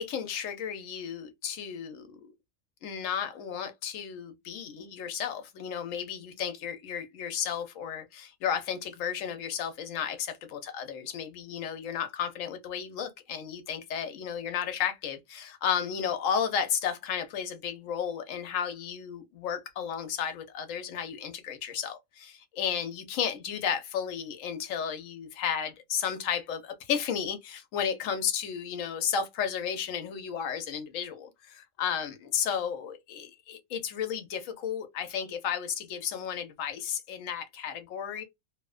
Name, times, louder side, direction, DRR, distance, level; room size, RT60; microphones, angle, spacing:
voice 1, 0.0-2.2 2.8-38.2, left 8 dB, 80° left, 1.0 m, -33 dB
2.6 x 2.1 x 2.3 m
omnidirectional pair, 1.3 m